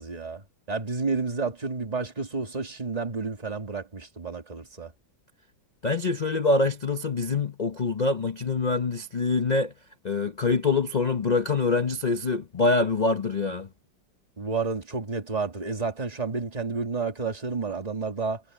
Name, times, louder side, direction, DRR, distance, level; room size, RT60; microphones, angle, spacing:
voice 1, 0.0-4.9 14.4-18.4, right 4 dB, 20° right, 2.1 m, -30 dB
voice 2, 5.8-9.7 10.0-13.7, left 3 dB, 60° left, 0.4 m, -25 dB
omnidirectional pair, 2.1 m